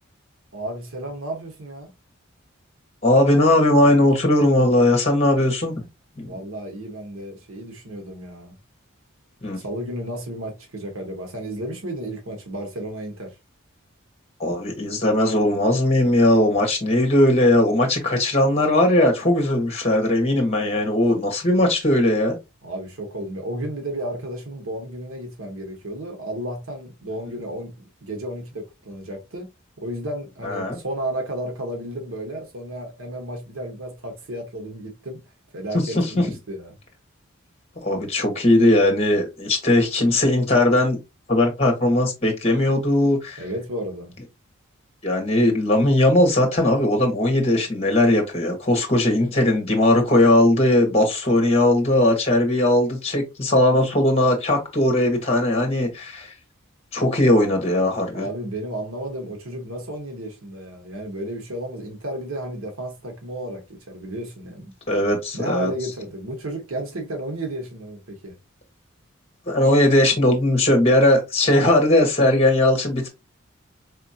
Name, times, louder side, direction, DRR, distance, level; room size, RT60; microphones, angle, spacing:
voice 1, 0.5-1.9 6.2-8.5 9.6-13.3 22.6-29.5 29.8-35.2 35.5-36.8 43.4-44.1 58.1-64.7 65.3-68.3, right 1 dB, 80° right, 1.1 m, -33 dB
voice 2, 3.0-5.7 6.2-6.3 9.4-9.6 14.4-22.4 30.4-30.8 35.8-36.2 37.8-41.0 41.3-43.4 45.0-56.3 56.9-58.2 64.9-65.7 69.5-73.1, left 1 dB, 30° left, 1.2 m, -19 dB
4.2 x 2.8 x 2.7 m
head